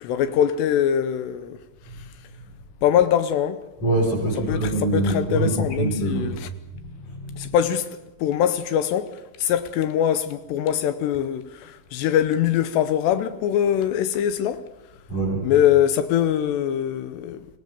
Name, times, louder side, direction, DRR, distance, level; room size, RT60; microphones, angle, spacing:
voice 1, 0.0-1.6 2.8-3.6 4.4-6.5 7.4-14.6 15.4-17.5, left 10 dB, 85° left, 3.1 m, -23 dB
voice 2, 3.8-6.4 7.2-7.5 15.1-15.4, right 2 dB, 45° left, 6.9 m, -24 dB
25.0 x 17.5 x 7.0 m
omnidirectional pair, 5.0 m